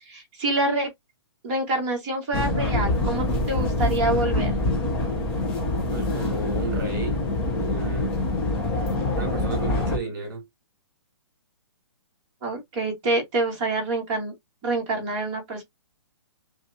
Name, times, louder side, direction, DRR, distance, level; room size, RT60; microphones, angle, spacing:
voice 1, 0.1-0.9 1.4-4.5 12.4-14.3 14.6-15.6, right 2 dB, 20° right, 1.5 m, -26 dB
sound 1, 2.3-10.0, left 2 dB, 5° left, 0.5 m, -25 dB
voice 2, 5.9-7.2 7.5-8.2 9.2-10.5, right 3 dB, 40° right, 2.6 m, -33 dB
5.4 x 2.3 x 2.7 m
hypercardioid pair, 175°, 15 cm